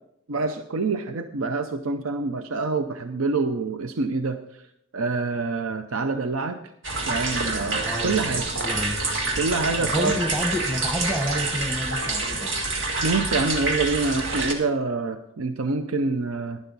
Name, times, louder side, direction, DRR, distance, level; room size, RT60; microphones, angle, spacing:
voice 1, 0.3-4.6 4.9-6.6 7.1-8.5 9.3-10.2 13.0-16.6, right 3 dB, 85° right, 8 dB, 0.6 m, -26 dB
sound 1, 6.8-14.5, right 2 dB, 65° right, 1.8 m, -27 dB
voice 2, 7.8-8.3 8.6-9.0 9.8-12.5, equal, 5° right, 4 dB, 1.2 m, -29 dB
11.5 x 11.0 x 4.0 m, 0.76 s
head